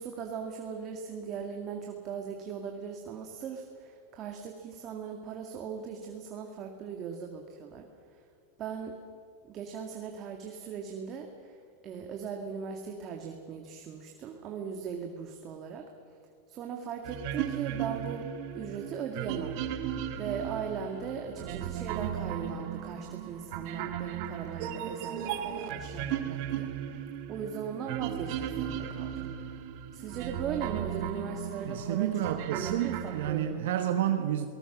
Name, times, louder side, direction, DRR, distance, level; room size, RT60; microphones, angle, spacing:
voice 1, 0.0-7.8 8.1-8.2 8.6-9.0 9.5-11.6 11.8-15.9 16.5-18.3 18.5-19.6 20.2-27.0 27.3-29.5 29.9-32.1 32.5-33.6, right 6 dB, 35° right, 3 dB, 2.1 m, -39 dB
sound 1, 17.0-33.3, right 9 dB, 55° right, 1.9 m, -36 dB
voice 2, 31.7-34.5, right 11 dB, 75° right, 7 dB, 1.3 m, -30 dB
28.0 x 19.5 x 6.2 m, 2.3 s
supercardioid pair, 140°, 0 cm